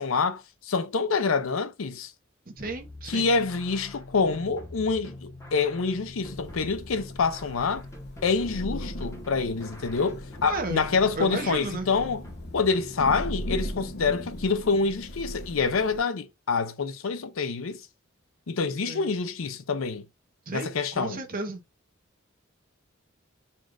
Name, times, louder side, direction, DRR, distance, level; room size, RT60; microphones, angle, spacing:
voice 1, 0.0-2.1 3.1-7.8 8.2-12.2 12.5-17.8 18.5-20.1 20.5-21.2, left 4 dB, 75° left, 0.6 m, -26 dB
sound 1, 2.6-13.1, left 1 dB, 15° left, 0.9 m, -44 dB
voice 2, 2.6-3.3 10.5-11.9 18.8-19.1 20.5-21.6, right 2 dB, 45° right, 1.0 m, -33 dB
Thunder / Rain, 6.3-16.0, equal, 55° left, 1.0 m, -39 dB
4.3 x 2.4 x 4.5 m
head